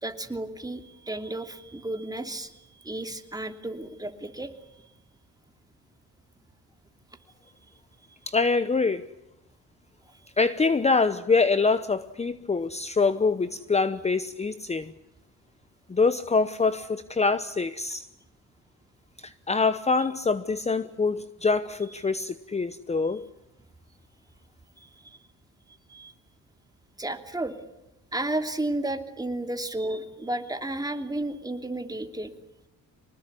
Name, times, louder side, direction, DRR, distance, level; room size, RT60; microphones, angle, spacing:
voice 1, 0.0-2.5 2.8-4.5 25.0-25.2 25.9-26.1 27.0-27.5 28.1-32.3, right 1 dB, 10° right, 2.9 m, -32 dB
voice 2, 8.3-9.0 10.4-14.9 15.9-18.1 19.2-23.2, left 4 dB, 20° left, 0.9 m, -25 dB
25.5 x 19.5 x 9.8 m
cardioid pair, 90°, 30 cm